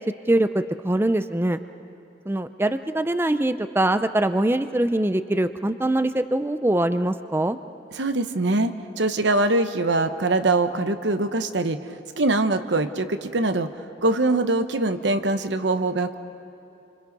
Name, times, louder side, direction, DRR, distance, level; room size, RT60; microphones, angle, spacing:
voice 1, 0.3-1.6 2.3-7.6, right 1 dB, 15° right, 10 dB, 0.5 m, -23 dB
voice 2, 7.9-13.7 14.0-16.1, right 2 dB, 85° right, 9 dB, 1.1 m, -23 dB
28.5 x 26.0 x 5.4 m, 2.9 s
head